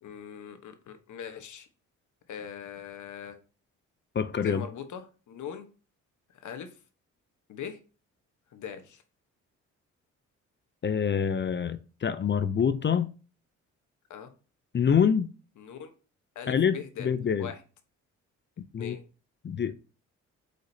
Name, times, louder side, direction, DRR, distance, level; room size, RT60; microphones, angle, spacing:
voice 1, 0.0-1.7 2.3-3.4 4.4-5.7 6.3-6.8 7.5-7.8 8.5-9.0 14.1-14.3 15.6-15.9 16.3-17.1 17.4-17.6 18.8-19.0, left 8 dB, 70° left, 1.2 m, -41 dB
voice 2, 4.1-4.6 10.8-13.1 14.7-15.3 16.5-17.5 18.6-19.0 19.4-19.7, left 7 dB, 35° left, 0.5 m, -26 dB
8.0 x 5.1 x 2.7 m
cardioid pair, 80°, 31 cm